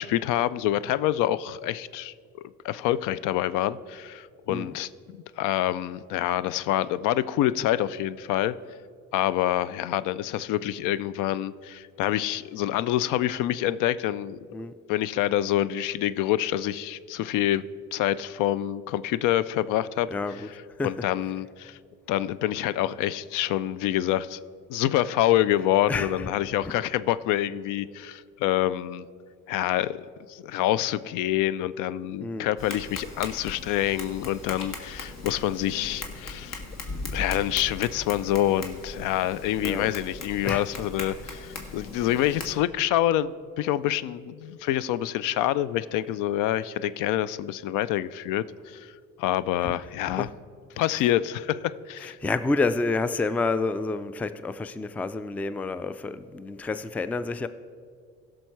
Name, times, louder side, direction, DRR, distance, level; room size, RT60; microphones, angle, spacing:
voice 1, 0.0-8.5 9.1-14.5 14.9-17.6 17.9-20.1 20.8-21.8 22.1-24.4 24.7-29.1 29.5-36.6 37.1-50.3 50.8-52.2, left 13 dB, 65° left, 18 dB, 0.5 m, -27 dB
voice 2, 20.1-20.5 20.8-21.1 25.9-26.3 26.6-26.8 32.2-32.5 39.6-39.9 40.4-40.7 46.1-46.2 49.6-49.7 50.2-50.3 50.9-51.1 52.0-57.5, left 3 dB, 5° left, 14 dB, 0.3 m, -29 dB
Tap, 32.6-42.5, left 3 dB, 50° left, 1.8 m, -39 dB
15.5 x 6.3 x 4.6 m, 2.2 s
supercardioid pair, 75°, 34 cm